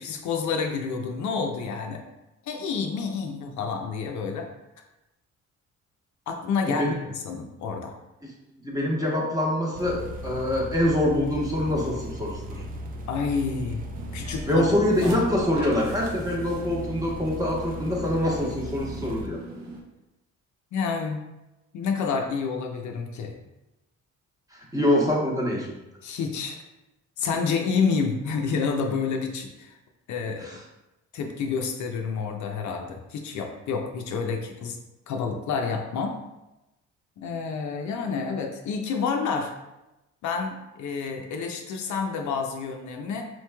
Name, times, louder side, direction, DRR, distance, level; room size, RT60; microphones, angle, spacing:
voice 1, 0.0-2.0 2.5-4.5 6.3-7.9 13.1-13.8 14.1-15.2 20.7-21.2 21.7-23.3 26.0-26.6 27.2-29.8 30.1-30.5 31.1-34.8 35.1-36.2 37.2-39.5 40.2-43.3, left 5 dB, 70° left, 3 dB, 0.5 m, -29 dB
voice 2, 8.6-12.6 14.5-19.4 24.5-25.7 30.4-30.6, left 1 dB, 10° right, -3 dB, 1.0 m, -25 dB
sound 1, 9.7-19.3, equal, 30° right, 0.4 m, -37 dB
sound 2, 13.9-19.8, right 2 dB, 60° right, 0.7 m, -42 dB
4.2 x 3.0 x 2.2 m, 0.97 s
cardioid pair, 90°, 30 cm